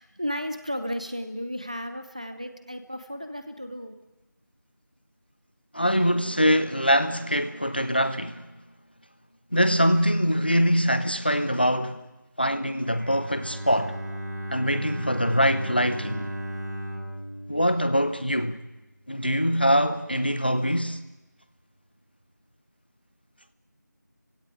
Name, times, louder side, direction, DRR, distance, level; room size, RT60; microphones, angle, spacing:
voice 1, 0.0-4.0, equal, 20° right, 1.0 m, -34 dB
voice 2, 5.7-8.4 9.5-12.0 12.4-14.0 14.5-16.3 17.5-18.6 19.1-21.0, equal, 30° left, 0.8 m, -23 dB
Bowed string instrument, 12.8-18.8, equal, 60° right, 5.6 m, -36 dB
30.0 x 16.5 x 9.1 m
figure-of-eight pair, 180°, 10 cm